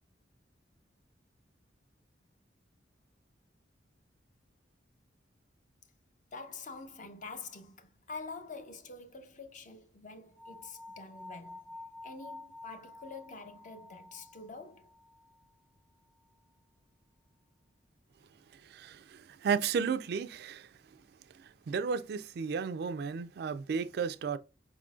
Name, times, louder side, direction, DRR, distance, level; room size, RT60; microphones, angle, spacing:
voice 1, 6.3-11.8 12.0-14.9, left 4 dB, 40° left, 0.6 m, -46 dB
sound 1, 10.4-15.5, left 2 dB, 15° left, 0.8 m, -50 dB
voice 2, 18.7-20.7 21.7-24.4, right 6 dB, 55° right, 0.3 m, -33 dB
4.8 x 3.7 x 2.3 m
head